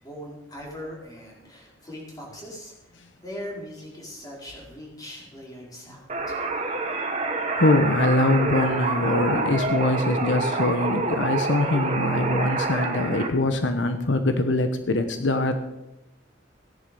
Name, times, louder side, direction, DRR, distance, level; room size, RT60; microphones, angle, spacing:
voice 1, 0.0-2.7 3.2-6.4, equal, 20° left, -3 dB, 4.9 m, -40 dB
sound 1, 6.1-13.3, right 3 dB, 40° right, 1.6 m, -27 dB
voice 2, 7.5-15.6, left 2 dB, 80° left, 8 dB, 1.1 m, -23 dB
17.0 x 10.5 x 5.5 m, 0.93 s
head